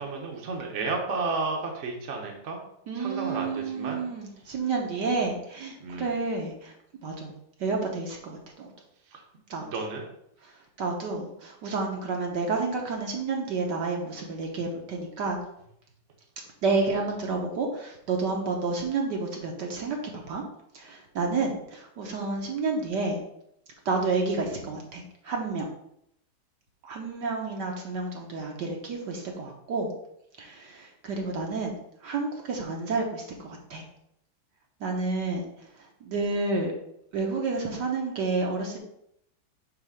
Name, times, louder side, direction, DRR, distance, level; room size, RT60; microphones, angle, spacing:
voice 1, 0.0-2.6 2.9-4.0 5.0-5.3 5.8-6.1 9.1-9.2 9.6-10.0, right 3 dB, 45° right, 1 dB, 1.2 m, -32 dB
voice 2, 2.9-6.7 7.0-7.3 7.6-8.7 9.5-9.7 10.8-15.4 16.6-20.4 20.7-23.2 23.8-25.7 26.8-29.9 30.4-31.8 32.0-33.8 34.8-35.4 36.0-36.7 37.1-38.8, right 3 dB, 65° right, 1 dB, 1.6 m, -30 dB
5.0 x 4.2 x 5.6 m, 0.74 s
omnidirectional pair, 2.1 m